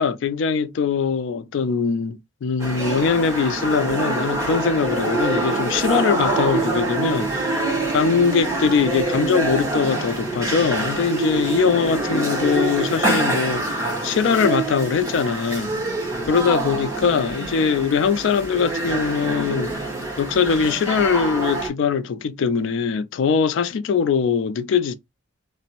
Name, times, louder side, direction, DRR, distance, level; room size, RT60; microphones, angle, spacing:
voice 1, 0.0-7.6 7.9-15.7 16.3-19.7 20.2-24.9, left 6 dB, 70° left, 0.3 m, -21 dB
sound 1, 2.6-21.7, right 2 dB, 15° right, 0.9 m, -25 dB
2.5 x 2.0 x 2.8 m
head